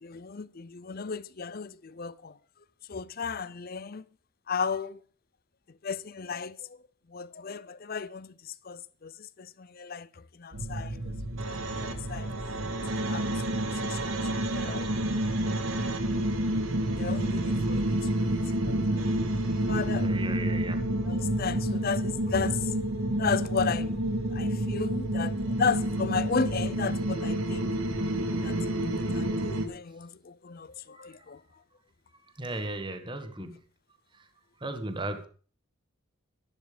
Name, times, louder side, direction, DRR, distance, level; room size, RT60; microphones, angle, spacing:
voice 1, 0.0-2.4 2.9-4.0 4.5-5.0 5.7-6.8 7.1-11.2 11.5-12.4 13.0-14.9 17.0-19.2 19.7-20.1 21.0-22.7 23.2-27.7 28.4-28.6 28.9-31.4 33.4-33.5, left 5 dB, 45° left, 0.6 m, -35 dB
sound 1, 10.5-29.7, right 1 dB, 90° right, 2.1 m, -29 dB
voice 2, 20.0-20.8 32.4-33.5 34.6-35.3, right 2 dB, 25° right, 1.4 m, -35 dB
12.5 x 10.5 x 5.1 m
head